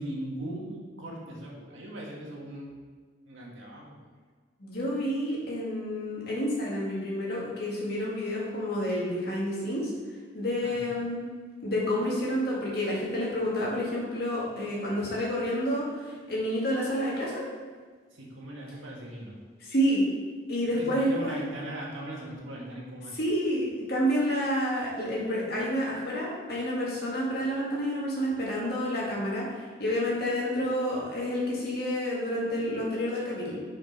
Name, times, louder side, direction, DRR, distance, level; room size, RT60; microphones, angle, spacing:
voice 1, 0.0-2.7 3.3-4.0 10.6-11.0 18.1-19.4 20.8-23.2, right 1 dB, 80° right, -3 dB, 1.8 m, -39 dB
voice 2, 4.6-9.9 10.3-11.2 11.6-17.4 19.6-20.1 20.5-21.4 23.1-33.6, equal, 50° left, -5 dB, 2.1 m, -29 dB
5.8 x 5.5 x 5.4 m, 1.5 s
head